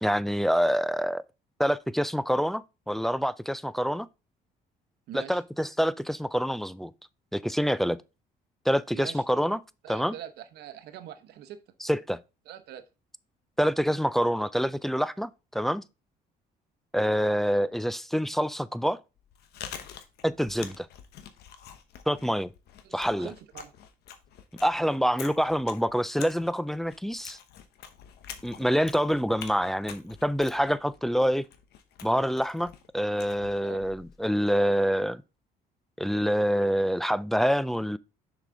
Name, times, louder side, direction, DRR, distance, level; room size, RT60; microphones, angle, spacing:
voice 1, 0.0-1.2 1.6-4.1 5.1-6.9 7.3-8.0 8.7-9.6 9.9-10.1 11.8-12.2 13.6-15.8 16.9-19.0 20.2-20.9 22.1-22.5 22.9-23.3 24.6-27.4 28.4-31.4 32.0-35.2 36.0-38.0, equal, ahead, 0.3 m, -26 dB
voice 2, 5.1-5.4 8.9-9.2 9.8-11.6 12.5-12.8 22.8-23.7 33.6-33.8, right 11 dB, 75° right, 0.9 m, -43 dB
Chewing mastication, 19.2-34.3, left 8 dB, 75° left, 1.0 m, -47 dB
6.6 x 4.9 x 3.8 m
cardioid pair, 110°, 17 cm